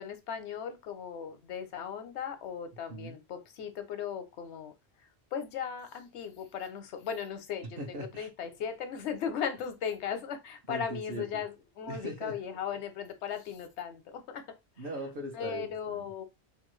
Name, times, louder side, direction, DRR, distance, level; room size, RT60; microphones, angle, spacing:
voice 1, 0.0-4.7 5.3-7.6 8.2-11.5 11.8-14.6 15.4-16.2, left 7 dB, 90° left, 0.9 m, -37 dB
voice 2, 7.6-8.3 10.7-11.4 11.9-12.4 14.8-16.1, right 1 dB, 60° right, 1.0 m, -40 dB
2.9 x 2.3 x 3.0 m
omnidirectional pair, 1.1 m